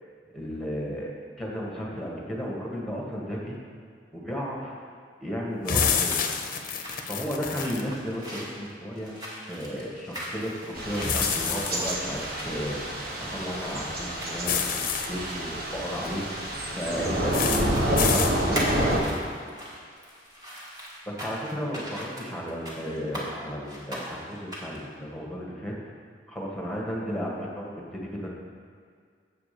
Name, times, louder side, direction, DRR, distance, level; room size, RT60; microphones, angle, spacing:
voice 1, 0.3-3.6 4.1-4.8 5.2-6.2 7.1-9.1 9.5-13.0 13.3-19.1 21.1-25.7 26.3-28.3, equal, ahead, -3 dB, 1.4 m, -34 dB
sound 1, 5.7-7.8 11.0-11.9 14.4-15.1 17.3-17.6 18.0-18.3, left 7 dB, 55° left, 0.6 m, -27 dB
sound 2, 6.0-17.4 17.7-18.2 18.5-23.3 23.7-24.8, equal, 25° right, 1.6 m, -39 dB
Thunder / Rain, 10.8-19.0, right 1 dB, 60° right, 1.4 m, -29 dB
7.5 x 4.9 x 6.7 m, 2.1 s
head